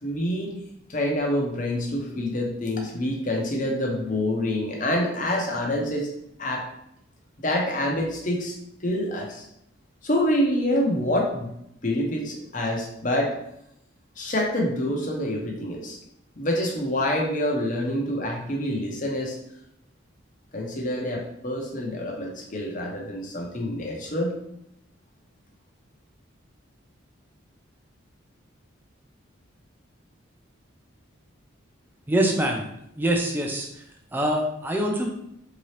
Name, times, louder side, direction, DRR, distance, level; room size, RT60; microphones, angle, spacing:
voice 1, 0.0-0.5 0.9-6.1 6.4-6.6 7.4-8.5 8.8-9.5 10.0-11.5 11.8-13.3 14.2-16.0 16.4-19.4 20.5-24.4, left 1 dB, 40° left, 0 dB, 0.7 m, -26 dB
voice 2, 32.1-32.7 33.0-33.8 34.1-35.1, right 1 dB, 10° right, 1 dB, 0.4 m, -24 dB
3.7 x 2.9 x 3.2 m, 0.78 s
head